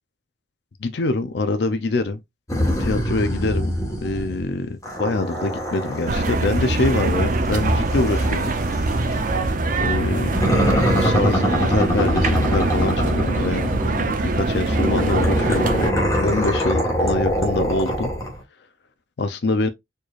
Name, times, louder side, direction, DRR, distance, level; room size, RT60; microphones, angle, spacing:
voice 1, 0.8-2.2 2.8-3.7 4.0-8.5 9.8-10.5 11.0-15.8 16.2-18.1 19.2-19.7, left 3 dB, 65° left, 0.5 m, -24 dB
sound 1, 2.5-4.5 4.8-9.3 10.3-14.2 14.7-18.4, equal, 15° left, 1.3 m, -24 dB
sound 2, 6.1-15.9, right 2 dB, 45° right, 0.5 m, -23 dB
4.4 x 3.2 x 2.4 m
head